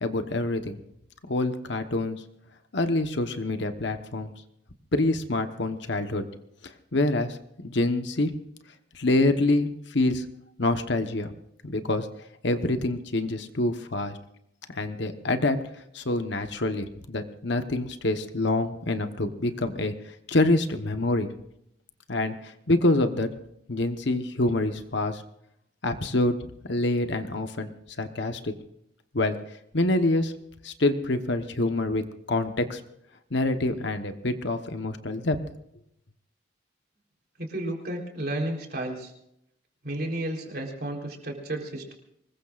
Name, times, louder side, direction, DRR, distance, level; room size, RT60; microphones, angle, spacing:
voice 1, 0.0-0.8 1.3-2.2 2.7-4.3 4.9-6.2 6.9-8.3 8.9-10.2 10.6-11.3 11.6-12.1 12.4-14.2 14.7-15.6 15.9-19.9 20.3-21.3 22.1-23.3 23.7-25.2 25.8-26.3 26.7-27.7 28.0-28.5 29.1-29.4 29.7-30.3 30.6-32.0 32.3-32.8 33.3-35.4, left 2 dB, 60° left, 8 dB, 1.2 m, -26 dB
voice 2, 37.4-39.1 39.8-41.9, right 1 dB, 50° right, 1 dB, 3.9 m, -32 dB
24.5 x 21.0 x 2.5 m, 0.77 s
head